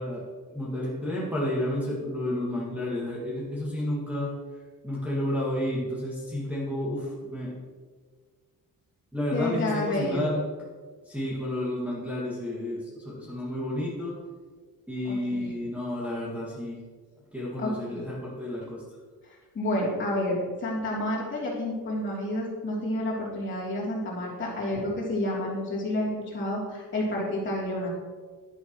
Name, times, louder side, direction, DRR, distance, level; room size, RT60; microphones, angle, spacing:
voice 1, 0.0-4.4 4.8-7.6 9.1-10.4 11.1-14.1 14.9-16.8 17.3-18.8, left 1 dB, 5° right, -8 dB, 2.0 m, -31 dB
voice 2, 9.3-10.3 15.0-15.5 17.6-17.7 19.2-27.9, left 1 dB, 30° left, -6 dB, 3.1 m, -30 dB
11.0 x 10.0 x 3.1 m, 1.5 s
cardioid pair, 150°, 36 cm